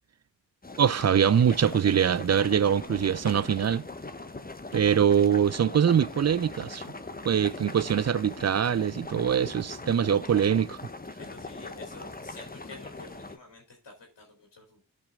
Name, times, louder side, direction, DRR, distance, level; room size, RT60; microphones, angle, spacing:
sound 1, 0.6-13.4, left 2 dB, 20° left, 1.1 m, -41 dB
voice 1, 0.8-3.8 4.7-6.8 7.2-10.8, right 8 dB, 40° right, 0.5 m, -23 dB
voice 2, 11.2-14.8, left 3 dB, 80° left, 2.9 m, -49 dB
15.0 x 5.1 x 3.6 m
cardioid pair, 45°, 43 cm